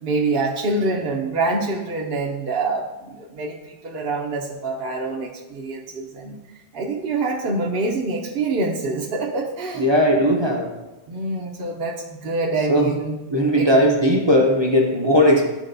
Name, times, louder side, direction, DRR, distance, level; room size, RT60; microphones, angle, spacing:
voice 1, 0.0-6.4 6.7-9.9 11.1-13.1 13.5-13.9, right 3 dB, 55° right, 1.0 m, -26 dB
voice 2, 9.7-10.9 12.7-13.0 13.3-15.4, equal, 25° right, 0.7 m, -18 dB
13.0 x 5.1 x 2.6 m
omnidirectional pair, 1.2 m